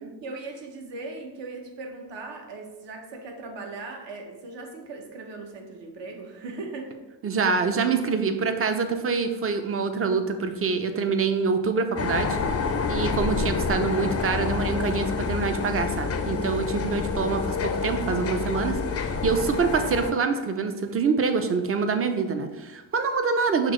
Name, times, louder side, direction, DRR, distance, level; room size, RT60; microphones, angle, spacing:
voice 1, 0.0-7.0, right 3 dB, 60° right, 3 dB, 0.8 m, -39 dB
voice 2, 7.2-12.4 12.9-23.7, right 5 dB, 30° right, 8 dB, 0.4 m, -25 dB
sound 1, 12.0-20.1, left 5 dB, 35° left, 0.4 m, -28 dB
5.9 x 2.0 x 3.0 m, 1.1 s
supercardioid pair, 55°, 48 cm